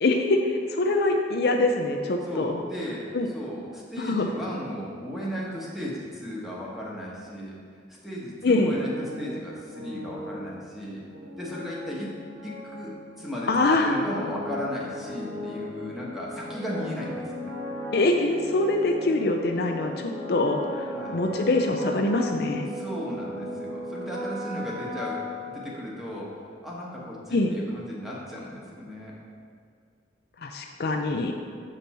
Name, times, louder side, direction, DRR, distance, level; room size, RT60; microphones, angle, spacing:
voice 1, 0.0-2.6 3.1-3.3 4.0-4.3 8.4-8.7 13.5-13.9 17.9-20.6 21.1-22.7 27.3-27.5 30.4-31.3, left 2 dB, 60° left, 3 dB, 0.5 m, -24 dB
voice 2, 2.3-7.6 7.9-11.1 11.4-17.6 20.9-21.2 22.7-29.2, equal, ahead, -5 dB, 1.3 m, -36 dB
sound 1, 8.4-26.1, left 1 dB, 85° right, 1.9 m, -37 dB
7.5 x 5.3 x 4.2 m, 2.2 s
head